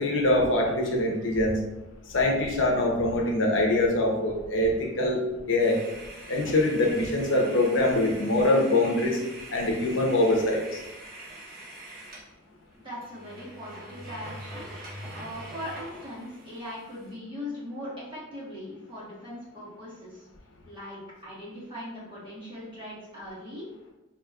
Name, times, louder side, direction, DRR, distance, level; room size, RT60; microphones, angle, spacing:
voice 1, 0.0-1.6 2.1-5.2 5.5-5.8 6.3-9.2 9.5-10.8, left 1 dB, 75° left, 0 dB, 0.8 m, -24 dB
sound 1, 5.6-12.3 12.7-12.8 13.0-17.1, right 1 dB, 50° right, 1.0 m, -43 dB
voice 2, 12.8-14.7 15.1-20.3 20.6-23.7, left 1 dB, 25° right, -7 dB, 1.4 m, -40 dB
4.9 x 2.9 x 2.3 m, 1.0 s
head